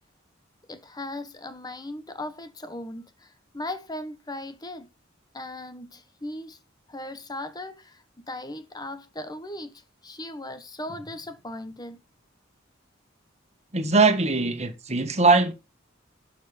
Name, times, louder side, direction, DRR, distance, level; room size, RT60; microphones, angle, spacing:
voice 1, 0.7-4.9 5.3-6.6 6.9-12.0, left 1 dB, 20° left, 1.2 m, -38 dB
voice 2, 13.7-15.5, right 3 dB, 35° right, 1.7 m, -21 dB
12.0 x 5.8 x 5.2 m
head